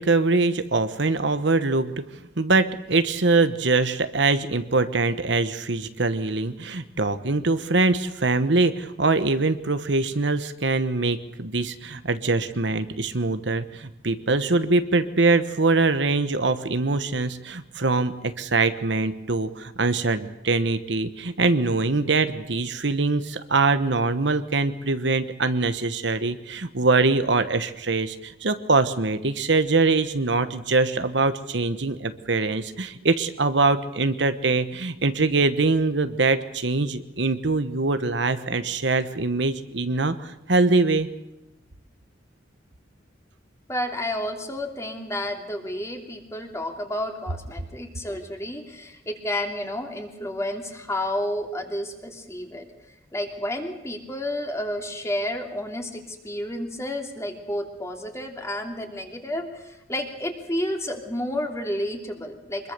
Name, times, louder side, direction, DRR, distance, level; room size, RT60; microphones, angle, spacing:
voice 1, 0.0-2.0 2.4-41.1, right 3 dB, 70° right, 10 dB, 1.2 m, -23 dB
voice 2, 43.7-52.7 53.1-62.7, left 1 dB, 15° left, 3 dB, 3.0 m, -31 dB
24.5 x 22.0 x 6.8 m, 0.92 s
head